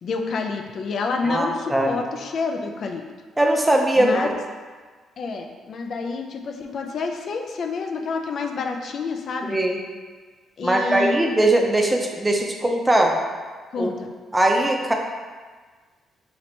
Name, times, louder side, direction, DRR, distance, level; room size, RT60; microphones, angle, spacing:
voice 1, 0.0-3.0 4.0-4.3 5.2-9.6 10.6-11.2 13.7-14.1, left 4 dB, 60° left, 3 dB, 0.4 m, -28 dB
voice 2, 1.2-2.0 3.4-4.3 9.5-9.8 10.6-13.1 13.8-13.9 14.3-14.9, right 1 dB, 15° right, 1 dB, 0.5 m, -20 dB
3.2 x 2.9 x 4.2 m, 1.5 s
cardioid pair, 90°, 0 cm